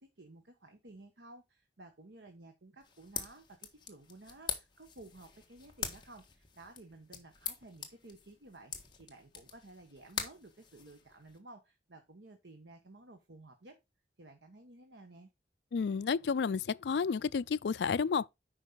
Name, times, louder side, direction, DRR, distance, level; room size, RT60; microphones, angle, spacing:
voice 1, 0.0-13.8 14.2-15.3, right 2 dB, 80° right, 1.3 m, -54 dB
sound 1, 2.8-11.4, left 7 dB, 25° left, 1.6 m, -44 dB
voice 2, 15.7-18.3, left 5 dB, 70° left, 0.4 m, -31 dB
9.1 x 5.3 x 3.9 m
head